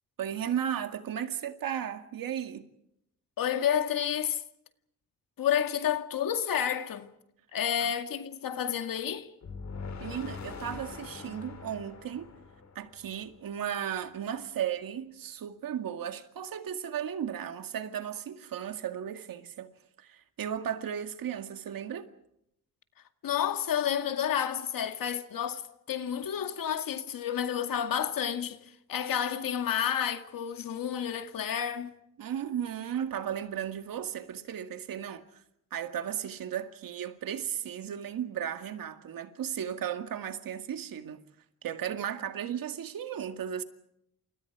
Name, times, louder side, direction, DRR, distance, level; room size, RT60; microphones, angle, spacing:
voice 1, 0.2-2.7 7.8-7.9 10.0-12.3 12.8-19.7 20.0-22.1 32.2-35.4 35.7-41.2 41.6-43.6, right 9 dB, 85° right, 2.2 m, -35 dB
voice 2, 3.4-4.4 5.4-7.1 7.5-9.3 23.2-31.9, left 9 dB, 80° left, 2.2 m, -30 dB
sound 1, 9.4-13.5, left 5 dB, 55° left, 4.4 m, -43 dB
30.0 x 27.5 x 4.9 m
wide cardioid pair, 120°, 33 cm